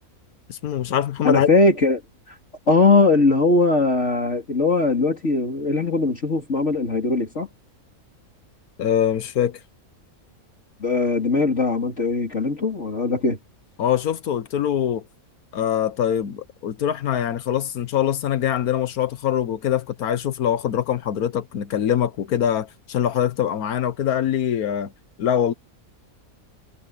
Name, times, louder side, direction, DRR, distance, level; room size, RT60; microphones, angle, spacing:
voice 1, 0.5-1.5 8.8-9.6 13.8-15.0 15.5-24.9 25.2-25.5, left 9 dB, 90° left, 1.5 m, -23 dB
voice 2, 1.2-2.0 2.3-2.4 2.7-7.5 10.8-13.4, left 3 dB, 50° left, 3.7 m, -20 dB
omnidirectional pair, 1.5 m